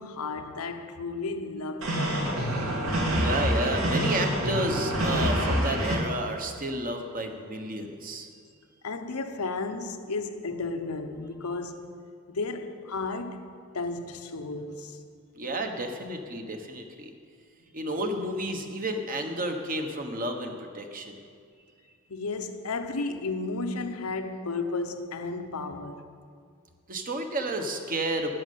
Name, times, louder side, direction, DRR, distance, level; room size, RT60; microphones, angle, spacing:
voice 1, 0.0-2.7 8.8-12.0 12.3-13.5 13.7-15.0 22.1-26.0, left 3 dB, 90° left, 0.9 m, -33 dB
sound 1, 1.8-5.9, equal, 70° right, 2.5 m, -26 dB
voice 2, 3.1-8.3 15.3-17.1 17.7-21.2 26.9-28.3, right 1 dB, 40° right, 1.2 m, -31 dB
12.0 x 6.6 x 9.3 m
head